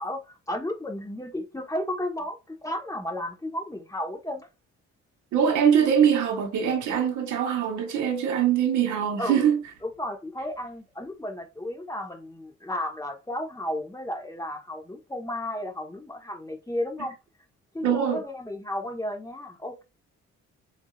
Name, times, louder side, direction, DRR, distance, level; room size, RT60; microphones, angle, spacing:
voice 1, 0.0-4.5 9.2-9.5 9.8-17.2 17.7-19.8, left 1 dB, 10° left, 1.4 m, -33 dB
voice 2, 5.3-9.6 17.8-18.2, right 8 dB, 80° right, 1.5 m, -23 dB
7.2 x 2.9 x 2.5 m
cardioid pair, 85°, 29 cm